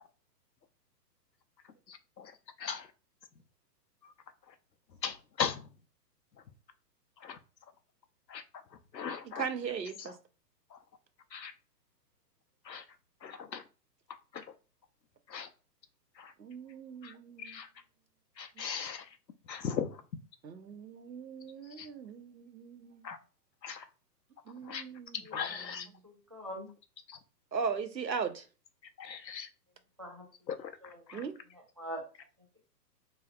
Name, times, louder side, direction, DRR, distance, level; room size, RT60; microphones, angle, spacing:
voice 1, 1.9-2.3 2.6-2.8 5.0-5.6 7.2-7.4 8.3-8.4 8.9-9.4 11.3-11.5 12.7-12.8 13.2-13.6 14.3-14.4 15.3-15.5 16.2-16.3 17.0-17.1 17.4-17.7 18.4-19.0 19.5-19.9 21.8-21.9 23.0-23.2 23.6-23.8 24.7-24.8 25.3-25.9 27.1-27.2 29.0-29.5 30.5-30.7, left 7 dB, 85° left, 0.7 m, -37 dB
voice 2, 9.2-10.2 16.4-17.6 18.6-18.7 20.4-23.0 24.5-25.9 27.5-28.5 31.1-31.3, right 6 dB, 90° right, 0.8 m, -39 dB
voice 3, 26.0-26.7 30.0-30.2 30.8-31.2 31.8-32.0, right 1 dB, 20° right, 0.3 m, -43 dB
3.5 x 3.2 x 2.3 m
figure-of-eight pair, 120°, 49 cm